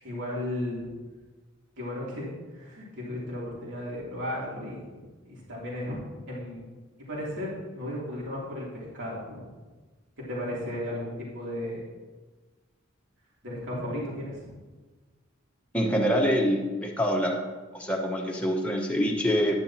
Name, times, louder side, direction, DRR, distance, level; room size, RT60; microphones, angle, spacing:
voice 1, 0.0-0.8 1.8-6.0 6.3-6.6 7.0-9.5 10.3-11.8 13.4-14.5, left 1 dB, 65° right, -6 dB, 3.1 m, -35 dB
voice 2, 15.7-17.4 17.7-19.6, equal, 5° left, -1 dB, 1.1 m, -25 dB
10.5 x 9.8 x 2.9 m, 1.3 s
head